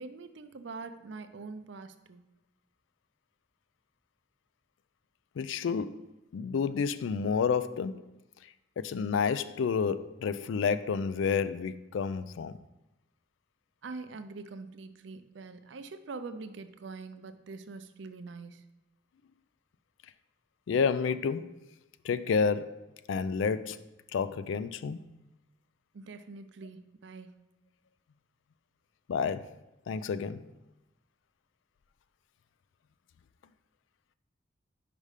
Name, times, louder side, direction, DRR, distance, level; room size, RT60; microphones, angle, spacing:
voice 1, 0.0-2.2 13.8-18.6 25.9-27.3, right 4 dB, 70° right, 0.5 m, -44 dB
voice 2, 5.4-6.1 6.3-8.1 8.8-12.6 20.7-21.6 22.0-23.8 24.1-25.0 29.1-29.6 29.9-30.5, left 6 dB, 80° left, 0.3 m, -30 dB
5.4 x 5.0 x 4.9 m
head